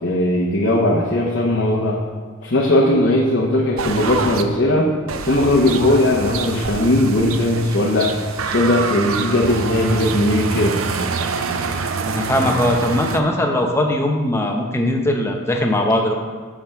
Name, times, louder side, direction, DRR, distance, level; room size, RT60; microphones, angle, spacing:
voice 1, 0.0-2.0 2.4-4.9 5.2-8.1 8.4-10.8, left 1 dB, 55° left, -3 dB, 0.8 m, -18 dB
sound 1, 3.8-4.4 5.1-13.2, right 5 dB, 90° right, 0.5 m, -26 dB
voice 2, 12.0-16.1, left 1 dB, 10° left, 2 dB, 0.7 m, -20 dB
6.0 x 5.4 x 6.9 m, 1.6 s
head